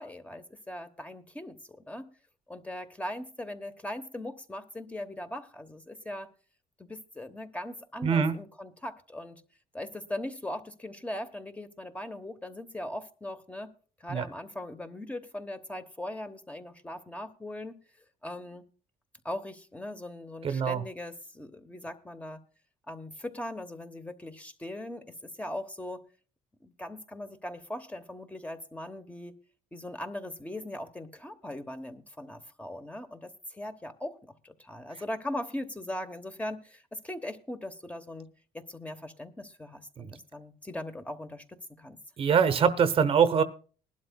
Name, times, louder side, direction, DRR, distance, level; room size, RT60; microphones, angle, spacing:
voice 1, 0.0-2.1 2.5-6.3 6.8-9.4 9.7-13.7 14.0-17.8 18.2-18.6 19.2-22.4 22.9-26.0 26.6-29.3 29.7-38.3 38.5-42.0, left 1 dB, 10° left, 8 dB, 1.0 m, -40 dB
voice 2, 8.0-8.4 14.1-14.3 20.4-20.8 40.0-40.2 42.2-43.4, right 7 dB, 45° right, 12 dB, 0.9 m, -24 dB
20.0 x 12.0 x 2.3 m, 0.38 s
cardioid pair, 125°, 13 cm